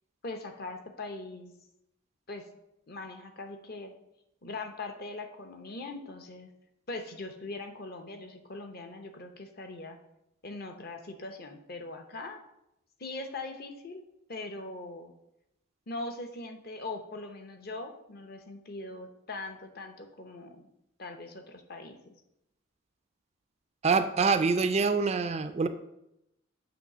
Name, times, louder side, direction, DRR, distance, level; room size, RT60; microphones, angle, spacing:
voice 1, 0.2-1.5 2.3-2.4 2.9-3.9 4.4-6.5 6.9-10.0 10.4-12.4 13.0-14.0 14.3-15.1 15.9-20.6 21.0-22.0, left 2 dB, 45° left, 5 dB, 0.8 m, -41 dB
voice 2, 23.8-25.7, right 4 dB, 30° right, 9 dB, 0.4 m, -25 dB
8.2 x 3.2 x 6.0 m, 0.84 s
head